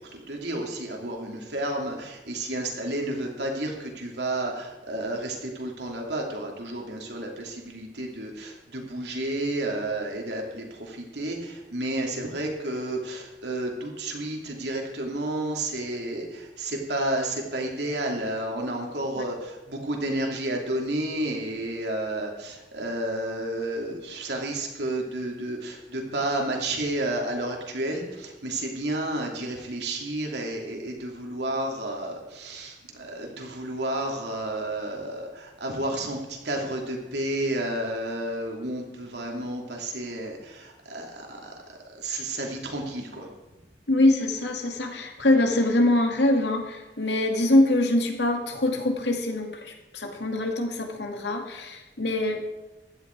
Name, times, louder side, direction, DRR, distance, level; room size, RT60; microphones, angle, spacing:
voice 1, 0.1-41.5 42.0-43.3, right 1 dB, 75° right, 1 dB, 2.9 m, -31 dB
voice 2, 43.9-52.4, left 1 dB, 80° left, 3 dB, 2.2 m, -24 dB
15.5 x 11.5 x 4.7 m, 1.0 s
head